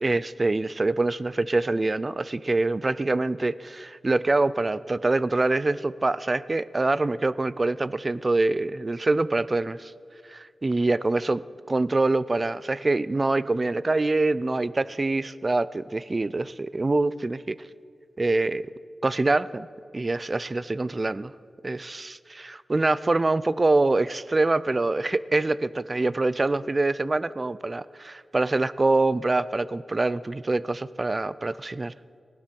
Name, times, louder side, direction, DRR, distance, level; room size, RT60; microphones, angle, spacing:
voice 1, 0.0-9.9 10.3-11.4 11.7-17.6 18.2-18.7 19.0-19.7 19.9-21.3 21.6-31.9, right 2 dB, 35° right, 18 dB, 0.4 m, -25 dB
18.5 x 12.0 x 5.2 m, 2.4 s
wide cardioid pair, 90°, 0 cm